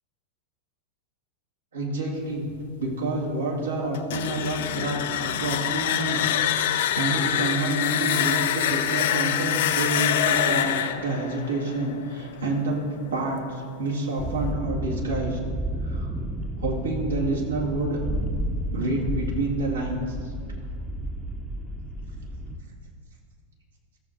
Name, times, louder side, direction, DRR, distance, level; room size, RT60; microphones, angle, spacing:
voice 1, 1.7-2.5 2.8-15.4 15.8-16.1 16.6-18.0 18.7-20.2, right 2 dB, 70° right, -2 dB, 2.2 m, -28 dB
sound 1, 3.9-12.8, left 10 dB, 55° left, 0.5 m, -25 dB
sound 2, 14.2-22.6, right 1 dB, ahead, 0.8 m, -31 dB
14.5 x 7.0 x 3.9 m, 2.2 s
figure-of-eight pair, 90°, 0 cm